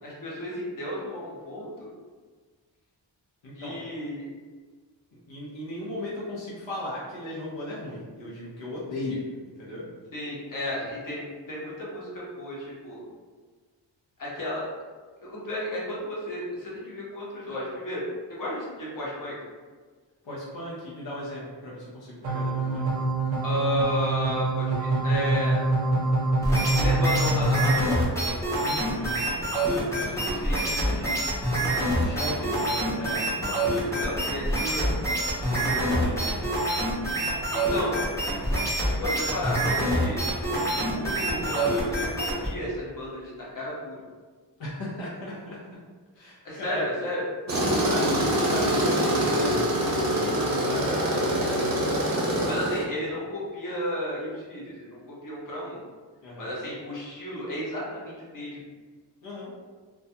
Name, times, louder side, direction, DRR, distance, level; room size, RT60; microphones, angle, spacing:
voice 1, 0.0-1.9 3.6-4.3 10.1-13.0 14.2-14.7 15.2-19.3 23.4-25.6 26.7-28.1 30.0-31.3 34.0-34.9 37.5-38.0 38.8-40.2 40.9-44.0 46.4-47.2 47.5-48.0 50.2-50.5 52.5-55.8 56.4-58.6, left 1 dB, 45° left, -6 dB, 0.9 m, -33 dB
voice 2, 3.4-3.9 5.3-9.9 20.2-22.9 28.6-29.4 32.0-33.6 35.4-36.7 44.6-45.6 46.1-46.8 47.5-51.7 56.2-56.5 59.2-59.5, left 1 dB, 85° left, -7 dB, 0.7 m, -36 dB
sound 1, 22.2-27.7, right 2 dB, 90° right, 0.6 m, -25 dB
sound 2, 26.4-42.5, right 1 dB, 5° left, 0.7 m, -26 dB
Tools, 47.5-52.8, right 1 dB, 40° right, 0.6 m, -25 dB
2.2 x 2.2 x 2.7 m, 1.5 s
cardioid pair, 70°, 44 cm